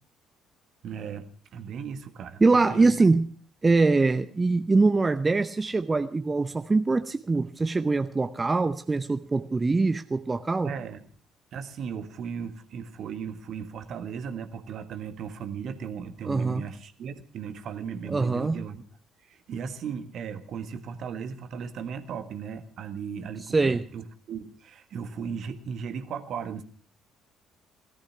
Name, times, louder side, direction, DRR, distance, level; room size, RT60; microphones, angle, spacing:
voice 1, 0.8-2.9 10.6-11.0 11.5-18.8 19.2-26.6, right 7 dB, 55° right, 9 dB, 1.6 m, -36 dB
voice 2, 2.4-3.3 3.6-10.7 16.3-16.7 18.1-18.6 23.5-23.8, right 3 dB, 25° right, 9 dB, 0.8 m, -23 dB
17.5 x 13.5 x 5.8 m, 0.42 s
figure-of-eight pair, 50°, 0 cm